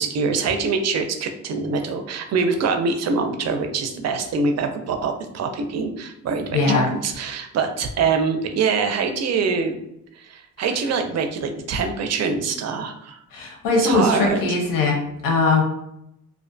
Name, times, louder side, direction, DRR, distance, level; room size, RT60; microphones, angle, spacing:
voice 1, 0.0-9.8 10.2-13.2 13.7-14.4, right 5 dB, 55° right, 6 dB, 0.4 m, -24 dB
voice 2, 6.5-6.9 13.3-15.0 15.2-15.6, left 3 dB, 85° left, 0 dB, 0.8 m, -20 dB
2.5 x 2.1 x 2.5 m, 0.78 s
cardioid pair, 120°, 32 cm